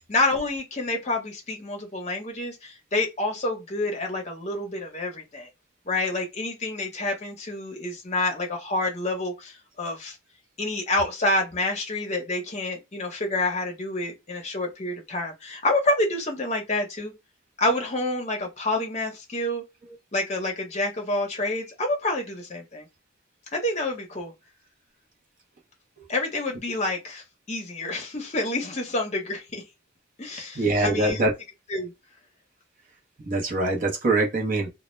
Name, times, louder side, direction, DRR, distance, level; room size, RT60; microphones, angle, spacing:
voice 1, 0.1-5.5 5.9-10.2 10.6-17.1 17.6-19.6 20.1-22.9 23.5-24.3 26.1-29.6 30.2-31.2 31.7-31.9, left 2 dB, 35° left, 0.7 m, -28 dB
voice 2, 30.3-31.3 33.3-34.7, right 2 dB, 40° right, 0.7 m, -24 dB
2.2 x 2.0 x 3.0 m
head